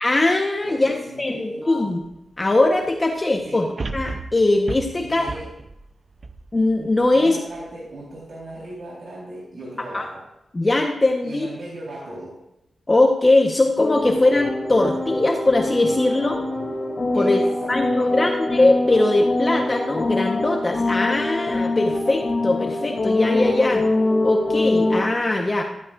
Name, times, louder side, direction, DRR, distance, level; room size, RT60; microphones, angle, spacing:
voice 1, 0.0-2.0 2.4-3.7 3.9-5.3 6.5-7.4 9.9-10.0 10.5-11.5 12.9-16.4 17.1-17.4 17.7-23.8 24.2-25.6, left 2 dB, 25° left, 2 dB, 1.1 m, -20 dB
voice 2, 0.6-1.7 3.4-3.7 4.9-5.5 7.1-10.2 11.2-12.4 17.1-18.3, right 1 dB, 65° right, -6 dB, 4.1 m, -37 dB
sound 1, 2.0-2.1 3.8-7.1 7.6-7.7, right 3 dB, 40° right, 0.6 m, -34 dB
sound 2, 13.8-25.0, left 2 dB, 45° left, 2.6 m, -24 dB
14.0 x 13.5 x 2.6 m, 0.87 s
wide cardioid pair, 130°, 0 cm